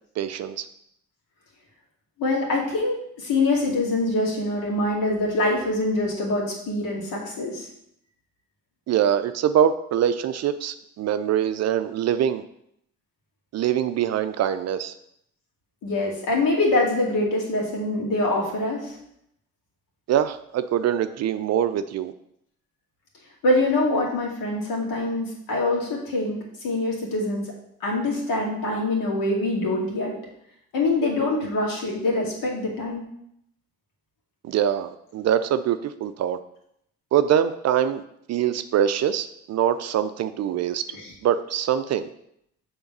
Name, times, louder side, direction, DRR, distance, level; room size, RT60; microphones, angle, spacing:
voice 1, 0.2-0.6 8.9-12.4 13.5-14.9 20.1-22.1 34.4-36.4 37.1-38.0 38.3-40.8 41.2-42.1, right 9 dB, 45° right, 11 dB, 0.5 m, -23 dB
voice 2, 2.2-7.7 15.8-19.0 23.4-27.5 27.8-30.1 30.7-33.1 40.9-41.1, left 2 dB, 60° left, -2 dB, 2.3 m, -24 dB
6.9 x 3.8 x 5.4 m, 0.75 s
hypercardioid pair, 55°, 37 cm